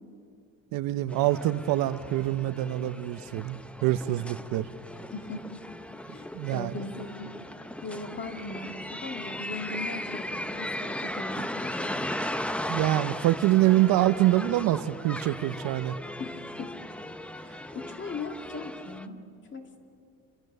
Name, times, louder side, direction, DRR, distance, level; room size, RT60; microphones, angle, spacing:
voice 1, 0.7-4.7 6.3-6.8 12.7-16.0, right 15 dB, 75° right, 13 dB, 0.9 m, -25 dB
sound 1, 1.1-19.1, left 1 dB, 5° left, 0.6 m, -37 dB
voice 2, 5.1-5.6 6.1-7.3 7.8-12.0 16.2-16.7 17.5-19.2 19.5-19.8, left 3 dB, 30° left, 4 dB, 2.4 m, -39 dB
29.5 x 24.5 x 6.7 m, 2.6 s
cardioid pair, 160°, 35 cm